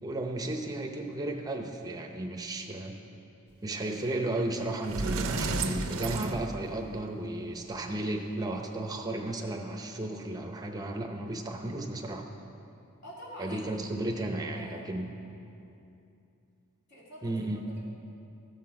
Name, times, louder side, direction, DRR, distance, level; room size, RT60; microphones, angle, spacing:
voice 1, 0.0-3.0 3.6-12.2 13.4-15.1 17.2-17.6, right 1 dB, 15° right, 2 dB, 0.7 m, -34 dB
Sliding door, 4.4-4.5 4.8-7.1, right 3 dB, 70° right, 0.6 m, -32 dB
voice 2, 13.0-13.7 14.0-15.0 16.9-17.5, equal, 50° left, -7 dB, 2.7 m, -46 dB
13.5 x 6.0 x 4.8 m, 2.7 s
head